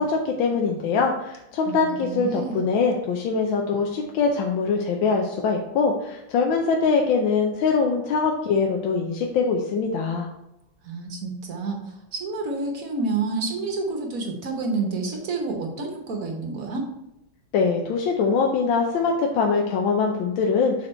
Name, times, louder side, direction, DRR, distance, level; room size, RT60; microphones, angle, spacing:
voice 1, 0.0-10.3 17.5-20.7, left 5 dB, 75° left, 1 dB, 1.4 m, -23 dB
voice 2, 1.6-2.7 10.8-16.9, right 3 dB, 50° right, 2 dB, 1.2 m, -29 dB
6.6 x 4.4 x 4.3 m, 0.86 s
omnidirectional pair, 2.2 m